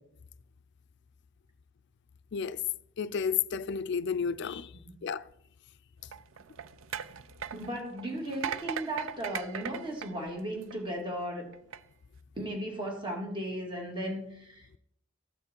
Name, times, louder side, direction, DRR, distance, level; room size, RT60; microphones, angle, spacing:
voice 1, 3.0-4.7 5.0-5.2, left 6 dB, 60° left, 0.4 m, -31 dB
sound 1, 6.0-11.0 11.5-11.8, right 8 dB, 75° right, 0.4 m, -39 dB
voice 2, 7.5-11.5 12.4-14.8, right 1 dB, 25° right, 2.4 m, -36 dB
14.0 x 5.7 x 4.5 m
head